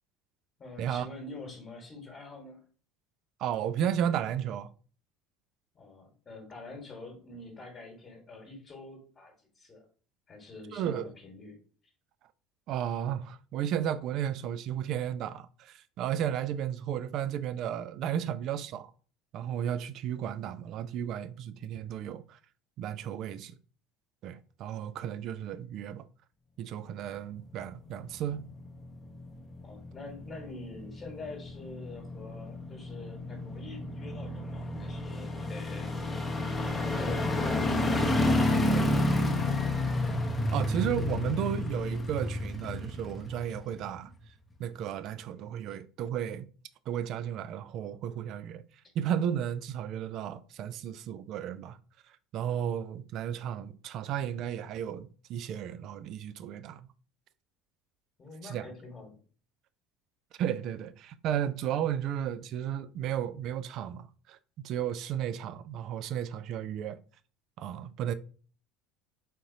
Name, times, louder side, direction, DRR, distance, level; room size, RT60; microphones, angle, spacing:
voice 1, 0.6-2.6 5.7-9.8 10.3-11.9 29.6-36.3 36.6-39.7 58.2-59.2, left 2 dB, 30° left, 1.3 m, -46 dB
voice 2, 3.4-4.7 10.7-11.1 12.7-18.9 19.3-22.4 22.8-23.5 24.2-26.1 26.6-28.5 40.5-44.1 44.6-46.5 46.9-48.6 49.0-51.8 52.3-56.9 58.4-58.6 60.4-64.4 64.6-67.0 67.6-68.1, right 9 dB, 45° right, 0.3 m, -33 dB
sound 1, 27.6-44.1 44.5-44.6, left 1 dB, 15° left, 0.8 m, -31 dB
3.9 x 3.7 x 2.7 m
figure-of-eight pair, 65°, 0 cm